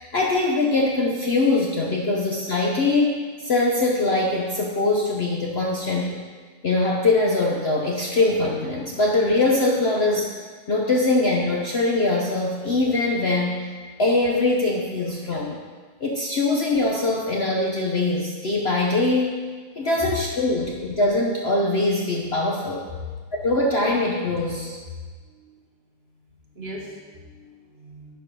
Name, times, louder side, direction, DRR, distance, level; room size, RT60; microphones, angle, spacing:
voice 1, 0.0-3.2 3.4-6.3 6.6-10.3 10.7-13.7 14.0-15.6 16.0-19.4 19.8-22.8 23.4-24.7, left 2 dB, 65° left, -1 dB, 0.6 m, -22 dB
voice 2, 25.3-25.6 26.5-28.2, left 1 dB, 35° right, -2 dB, 1.3 m, -39 dB
10.0 x 4.5 x 5.1 m, 1.5 s
omnidirectional pair, 2.1 m